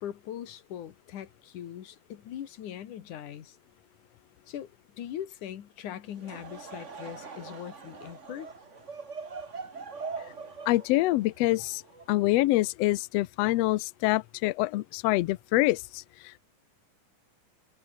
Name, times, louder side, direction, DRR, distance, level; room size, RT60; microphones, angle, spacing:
voice 1, 0.0-3.6 4.5-4.7 5.0-8.5, left 10 dB, 70° left, 3.1 m, -40 dB
Laughter / Crowd, 6.1-12.5, right 4 dB, 30° right, 1.6 m, -42 dB
voice 2, 10.7-11.8 12.1-16.4, left 18 dB, 90° left, 1.4 m, -26 dB
omnidirectional pair, 3.7 m